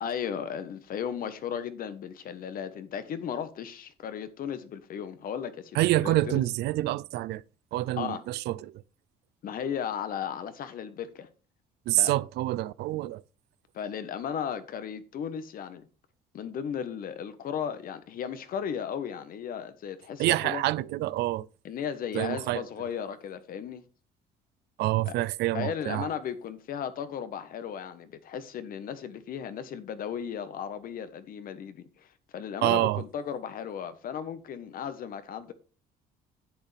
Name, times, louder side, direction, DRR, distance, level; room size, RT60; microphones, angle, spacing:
voice 1, 0.0-6.4 8.0-8.2 9.4-11.3 12.0-12.1 13.7-15.9 16.3-20.6 21.6-23.8 25.1-25.2 25.5-32.1 32.3-35.5, left 8 dB, 60° left, 1.3 m, -35 dB
voice 2, 5.7-7.4 7.7-8.8 11.9-13.2 20.2-21.5 22.1-22.7 24.8-26.1 32.6-33.0, right 16 dB, 80° right, 0.5 m, -27 dB
10.0 x 8.1 x 3.4 m
cardioid pair, 110°, 17 cm